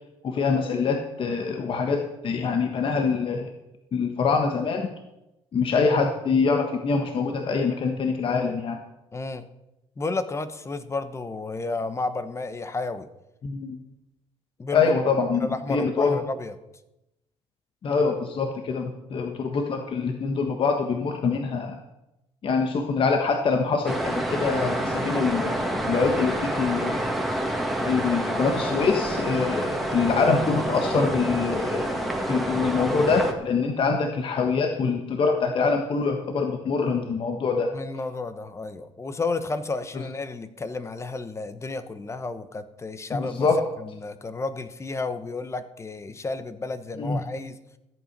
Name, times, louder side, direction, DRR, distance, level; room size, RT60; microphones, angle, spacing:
voice 1, 0.2-3.5 3.9-4.9 5.5-8.8 13.4-13.8 14.7-16.2 17.8-21.7 22.4-27.0 27.8-32.0 32.3-37.7 39.9-40.0 43.1-43.6 47.0-47.2, left 4 dB, 50° left, 4 dB, 1.4 m, -24 dB
voice 2, 9.1-9.4 10.0-13.1 14.6-14.9 15.4-16.5 37.7-43.5 43.8-47.6, left 3 dB, 25° left, 12 dB, 1.0 m, -32 dB
sound 1, 23.9-33.3, right 1 dB, ahead, 2.1 m, -28 dB
14.0 x 8.7 x 6.1 m, 0.93 s
cardioid pair, 90°, 12 cm